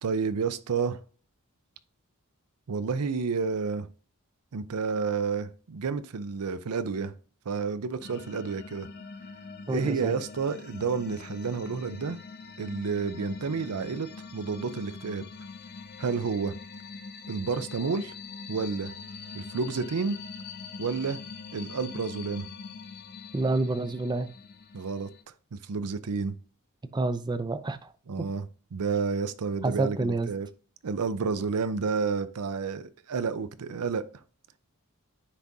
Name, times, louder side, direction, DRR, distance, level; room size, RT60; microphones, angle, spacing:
voice 1, 0.0-1.0 2.7-3.9 4.5-7.1 7.5-8.9 9.7-12.2 12.6-15.2 16.0-16.5 17.3-18.1 18.5-18.9 19.3-20.2 20.8-21.2 21.5-22.5 24.7-25.1 25.5-26.3 28.1-28.5 28.7-30.5 30.8-34.1, right 5 dB, 85° right, 0.5 m, -30 dB
sound 1, 8.0-25.2, left 5 dB, 45° left, 0.6 m, -43 dB
voice 2, 9.7-10.2 23.3-24.3 26.9-27.9 29.6-30.3, right 2 dB, 20° right, 0.4 m, -28 dB
9.8 x 3.6 x 2.7 m
head